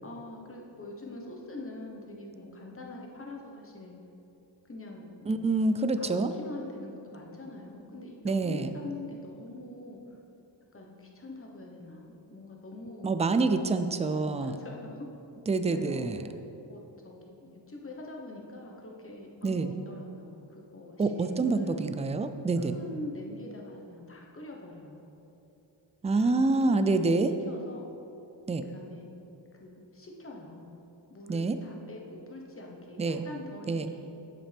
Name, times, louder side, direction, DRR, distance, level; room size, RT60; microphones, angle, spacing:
voice 1, 0.0-4.0 4.7-5.6 6.0-10.2 10.7-13.1 14.1-15.1 15.7-16.0 16.7-21.8 22.6-25.1 26.1-27.2 27.5-27.9 28.6-29.1 29.6-30.7 31.1-34.1, left 2 dB, 30° left, 0 dB, 1.2 m, -44 dB
voice 2, 5.3-6.3 8.2-8.7 13.0-14.6 15.5-16.2 19.4-19.7 21.0-22.7 26.0-27.3 28.5-28.6 31.3-31.6 33.0-33.3 33.7-33.9, right 3 dB, 15° right, 9 dB, 0.3 m, -27 dB
8.6 x 7.2 x 3.5 m, 2.9 s
wide cardioid pair, 85°, 44 cm